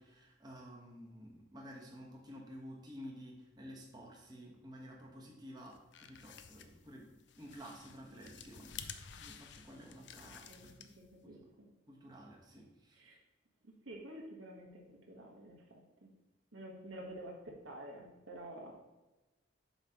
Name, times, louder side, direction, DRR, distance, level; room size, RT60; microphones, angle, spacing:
voice 1, 0.0-10.9 11.9-13.0, equal, 20° right, -2 dB, 1.1 m, -52 dB
sound 1, 5.7-11.2, left 8 dB, 65° left, 0.5 m, -52 dB
voice 2, 11.0-11.7 12.9-13.2 13.6-16.1 16.5-18.7, right 1 dB, 80° right, -1 dB, 1.6 m, -50 dB
8.0 x 3.2 x 5.6 m, 1.1 s
head